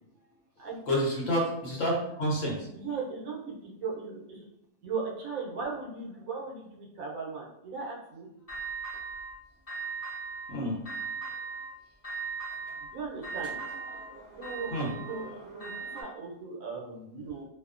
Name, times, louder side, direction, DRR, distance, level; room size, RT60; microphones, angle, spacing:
voice 1, 0.9-2.7 10.5-10.8 13.9-14.2 14.7-15.4, equal, 65° left, -3 dB, 1.1 m, -30 dB
voice 2, 2.7-4.5 4.8-8.3 12.9-13.5 14.4-15.3 15.5-17.5, right 5 dB, 80° right, -2 dB, 1.1 m, -37 dB
sound 1, 8.5-9.3 9.7-10.5 10.8-11.7 12.0-16.0, right 5 dB, 30° left, 0.8 m, -38 dB
2.7 x 2.1 x 2.4 m, 0.79 s
omnidirectional pair, 1.4 m